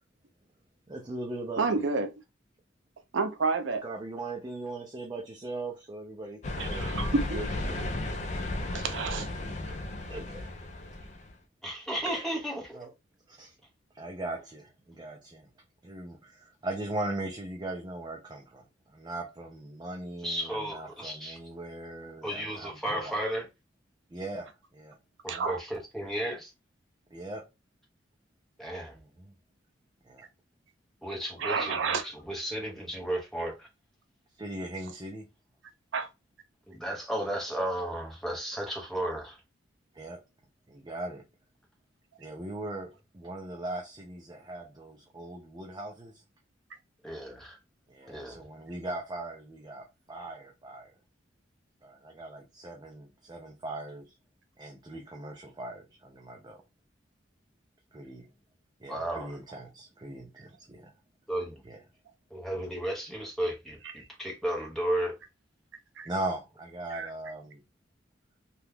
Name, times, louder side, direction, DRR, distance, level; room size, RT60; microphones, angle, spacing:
voice 1, 0.9-1.9 3.8-6.9 7.3-7.9 10.1-10.6 12.0-12.3 12.7-12.9 13.3-13.6 13.9-15.5 15.8-23.2 24.1-25.0 25.3-25.5 27.1-27.5 28.9-29.3 30.0-30.3 34.4-35.3 39.9-40.2 40.7-41.2 42.2-46.2 47.9-50.9 51.8-54.2 54.6-56.6 57.9-58.2 58.8-60.9 61.6-61.8 66.0-67.6, right 2 dB, 20° right, 0.4 m, -39 dB
voice 2, 1.6-2.1 3.1-3.8 6.6-7.4 8.7-9.3 25.3-25.6 31.4-32.1 35.9-36.1 66.0-66.1 66.9-67.1, right 4 dB, 70° right, 0.5 m, -29 dB
sound 1, 6.4-11.3, left 2 dB, 35° left, 0.4 m, -34 dB
voice 3, 11.6-12.8 20.2-21.4 22.2-23.5 25.2-26.5 28.6-28.9 31.0-33.7 36.7-39.4 47.0-47.6 48.1-48.4 58.9-59.3 61.3-61.6 62.3-65.2, right 1 dB, ahead, 0.9 m, -34 dB
2.9 x 2.3 x 3.4 m
head